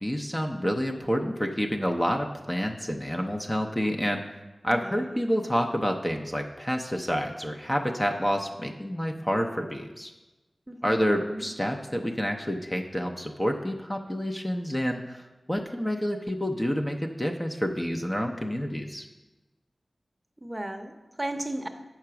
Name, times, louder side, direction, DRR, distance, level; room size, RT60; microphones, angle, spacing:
voice 1, 0.0-4.2 4.6-10.1 10.8-19.1, equal, 15° left, 3 dB, 0.6 m, -28 dB
voice 2, 10.7-11.4 20.4-21.7, right 1 dB, 15° right, 5 dB, 0.8 m, -34 dB
7.6 x 5.9 x 5.8 m, 1.1 s
wide cardioid pair, 75°, 0 cm